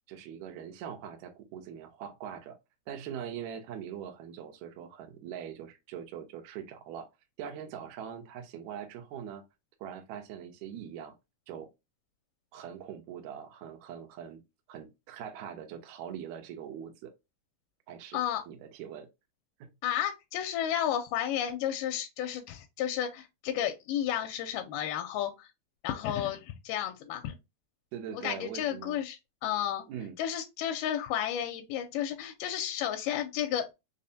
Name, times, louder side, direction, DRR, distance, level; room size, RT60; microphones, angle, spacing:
voice 1, 0.1-2.6 2.9-7.1 7.4-9.4 9.8-11.2 11.5-11.7 12.5-14.4 14.7-17.1 17.9-18.2 18.5-19.1 19.6-19.7 27.9-29.0 29.9-30.2, right 8 dB, 75° right, 1.8 m, -42 dB
voice 2, 19.8-25.5 25.8-27.4 28.2-29.8 30.2-33.7, left 10 dB, 85° left, 2.1 m, -32 dB
5.2 x 2.1 x 2.6 m
omnidirectional pair, 3.8 m